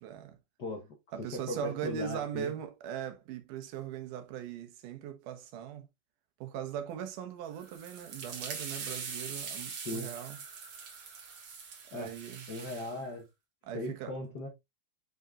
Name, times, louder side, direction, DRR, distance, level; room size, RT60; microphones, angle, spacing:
voice 1, 0.0-0.4 1.1-5.9 6.4-10.4 11.9-12.5 13.6-14.2, right 9 dB, 75° right, 2.5 m, -40 dB
voice 2, 1.2-2.5 9.8-10.1 11.9-12.2 12.5-13.2 13.7-14.5, left 1 dB, 85° left, 0.9 m, -38 dB
sound 1, 7.5-13.0, right 5 dB, 50° right, 1.8 m, -42 dB
7.9 x 5.3 x 2.4 m
omnidirectional pair, 3.8 m